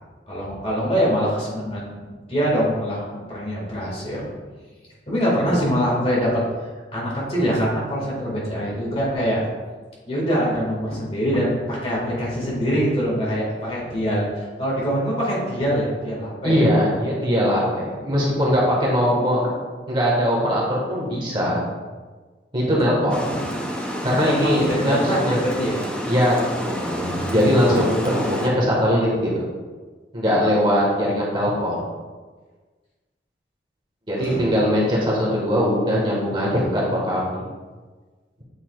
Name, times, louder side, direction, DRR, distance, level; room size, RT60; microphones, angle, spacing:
voice 1, 0.3-4.3 5.1-6.4 6.9-9.4 10.0-16.6 22.9-23.1 24.2-25.8 34.2-34.4, equal, 35° left, -5 dB, 2.0 m, -24 dB
voice 2, 16.4-19.5 19.9-21.6 22.5-23.4 24.0-25.4 26.1-29.5 30.1-31.8 34.1-37.4, equal, 30° right, -5 dB, 1.5 m, -21 dB
Water, 23.1-28.5, equal, 5° left, 0.6 m, -29 dB
8.4 x 5.6 x 2.4 m, 1.4 s
head